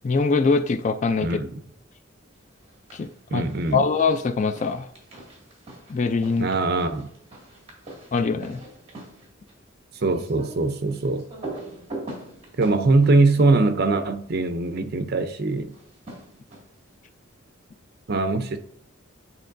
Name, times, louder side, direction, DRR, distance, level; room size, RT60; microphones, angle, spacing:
voice 1, 0.0-1.4 2.9-3.4 3.7-4.9 5.9-6.5 8.1-8.6, left 4 dB, 40° left, 10 dB, 0.4 m, -23 dB
voice 2, 1.2-1.6 3.3-3.9 6.4-7.1 9.9-11.2 12.6-15.7 18.1-18.6, right 3 dB, 55° right, 8 dB, 0.6 m, -22 dB
sound 1, 2.6-3.1 3.4-14.4 15.7-16.9, right 2 dB, 30° right, 2.1 m, -42 dB
9.9 x 4.5 x 2.6 m, 0.72 s
head